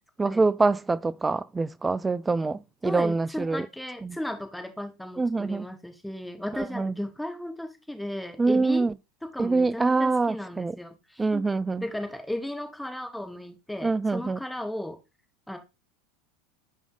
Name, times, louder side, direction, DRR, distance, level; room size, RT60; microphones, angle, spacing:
voice 1, 0.2-3.7 4.0-4.2 5.2-5.7 6.6-6.9 8.4-8.9 9.4-10.8 11.2-11.8 13.8-14.4, right 3 dB, 15° right, 0.4 m, -25 dB
voice 2, 2.5-8.9 9.2-11.4 11.8-15.0 15.5-15.6, left 1 dB, 5° left, 1.5 m, -35 dB
6.4 x 4.9 x 4.0 m
figure-of-eight pair, 80°, 0 cm